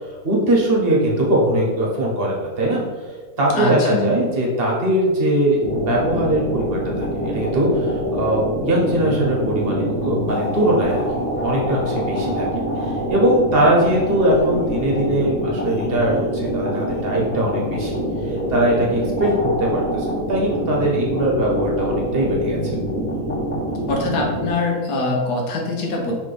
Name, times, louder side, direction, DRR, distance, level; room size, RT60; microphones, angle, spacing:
voice 1, 0.2-2.8 3.4-17.9 18.5-22.7, right 1 dB, 45° right, -2 dB, 0.9 m, -21 dB
voice 2, 3.5-4.1 23.9-26.1, left 2 dB, 90° left, -1 dB, 1.4 m, -23 dB
sound 1, 5.6-24.5, equal, 10° left, 0.5 m, -25 dB
4.2 x 3.0 x 3.3 m, 1.4 s
omnidirectional pair, 1.7 m